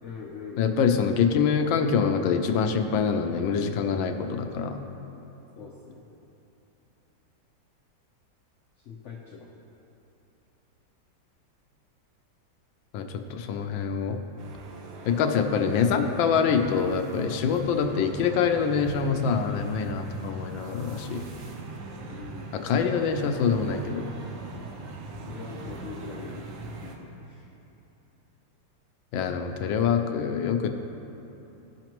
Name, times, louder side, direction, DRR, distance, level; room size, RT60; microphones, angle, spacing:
voice 1, 0.0-0.8 5.6-6.1 8.8-9.5 22.1-22.5 23.0-23.1 25.3-26.5 26.8-26.9 27.2-27.5, left 5 dB, 70° left, -2 dB, 0.7 m, -41 dB
voice 2, 0.6-4.8 12.9-14.2 15.0-21.3 22.5-24.1 29.1-30.7, left 6 dB, 85° left, 6 dB, 1.4 m, -25 dB
sound 1, 14.4-27.0, right 3 dB, 85° right, 1.6 m, -41 dB
15.0 x 5.8 x 3.0 m, 3.0 s
omnidirectional pair, 2.1 m